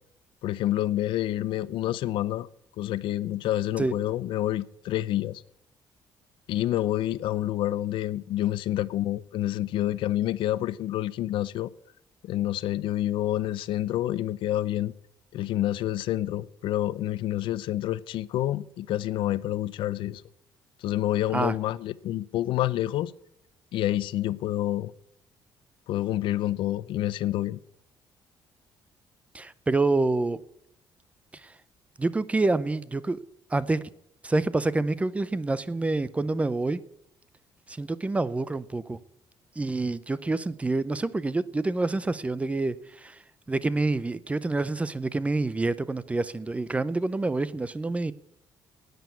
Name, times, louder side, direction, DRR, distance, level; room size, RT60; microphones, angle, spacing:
voice 1, 0.4-2.5 2.8-5.4 6.5-11.7 12.2-14.9 15.3-20.2 20.8-23.1 23.7-24.9 25.9-27.6, left 13 dB, 80° left, 0.5 m, -28 dB
voice 2, 29.3-30.4 31.3-31.5 32.0-33.2 33.5-33.8 34.2-36.8 37.7-39.0 39.6-43.2 43.5-48.1, right 2 dB, 15° right, 0.6 m, -27 dB
10.5 x 9.3 x 9.3 m
cardioid pair, 120°, 8 cm